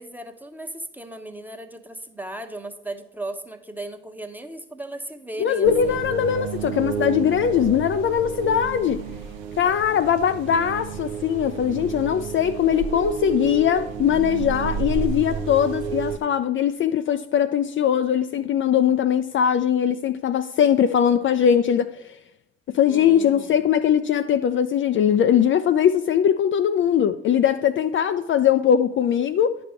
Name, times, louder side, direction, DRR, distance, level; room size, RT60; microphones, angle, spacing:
voice 1, 0.0-6.0 22.9-23.6, right 1 dB, 5° right, 1.0 m, -36 dB
voice 2, 5.4-9.0 9.6-21.9 22.7-29.6, left 9 dB, 40° left, 0.4 m, -21 dB
sound 1, 5.6-16.2, right 7 dB, 70° right, 0.8 m, -31 dB
10.0 x 5.3 x 4.4 m
hypercardioid pair, 50°, 30 cm